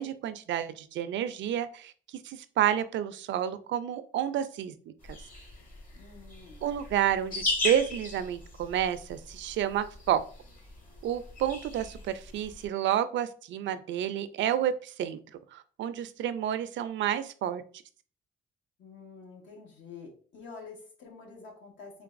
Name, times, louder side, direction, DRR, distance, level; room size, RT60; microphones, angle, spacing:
voice 1, 0.0-4.7 6.6-10.2 11.0-15.2 15.5-17.6, right 10 dB, 70° right, 12 dB, 0.4 m, -30 dB
sound 1, 5.0-12.7, left 2 dB, 45° left, 1.7 m, -38 dB
voice 2, 5.9-6.7 18.8-22.0, left 4 dB, 70° left, 1 dB, 1.4 m, -48 dB
3.8 x 3.2 x 2.5 m, 0.41 s
cardioid pair, 90°, 20 cm